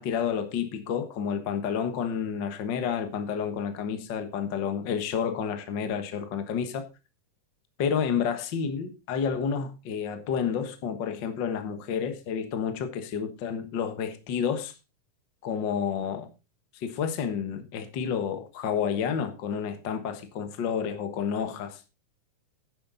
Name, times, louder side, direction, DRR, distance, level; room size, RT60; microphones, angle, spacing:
voice 1, 0.0-6.8 7.8-14.7 15.4-16.3 16.7-21.8, left 7 dB, 55° left, 1.3 m, -30 dB
11.0 x 9.6 x 3.9 m
omnidirectional pair, 3.8 m